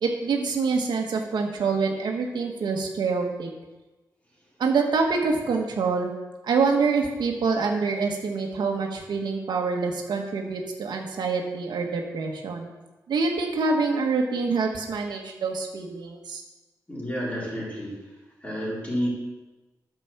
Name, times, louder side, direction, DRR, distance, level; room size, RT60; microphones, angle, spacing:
voice 1, 0.0-3.5 4.6-6.1 6.4-12.7 13.1-16.4, right 4 dB, 85° right, 2 dB, 1.5 m, -26 dB
voice 2, 16.9-18.0 18.4-19.1, equal, 20° left, -6 dB, 4.3 m, -30 dB
9.3 x 6.1 x 7.2 m, 1.1 s
wide cardioid pair, 105°, 7 cm